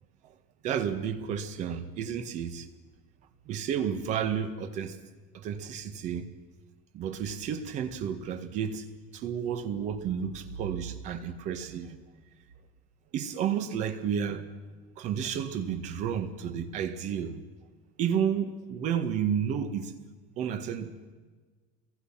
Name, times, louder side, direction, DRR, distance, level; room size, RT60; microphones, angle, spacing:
voice 1, 0.6-2.7 3.5-5.0 5.3-6.3 6.9-8.9 9.1-12.0 13.1-14.5 15.0-17.5 18.0-20.0 20.4-21.1, right 8 dB, 35° right, 1.8 m, -31 dB
28.5 x 22.5 x 5.9 m
cardioid pair, 180°, 20 cm